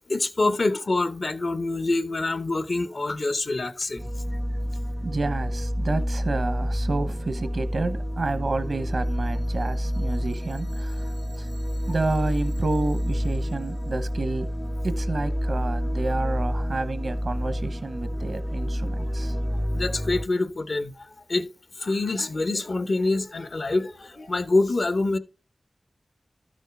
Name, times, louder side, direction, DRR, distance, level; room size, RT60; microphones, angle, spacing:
voice 1, 0.1-4.1 13.9-14.0 19.7-21.5 21.8-25.2, left 2 dB, 65° left, 0.8 m, -26 dB
sound 1, 4.0-20.2, equal, ahead, 0.4 m, -28 dB
voice 2, 5.0-11.1 11.4-11.5 11.9-14.5 14.8-19.4, right 3 dB, 75° right, 0.9 m, -30 dB
13.0 x 6.3 x 3.5 m
cardioid pair, 45°, 0 cm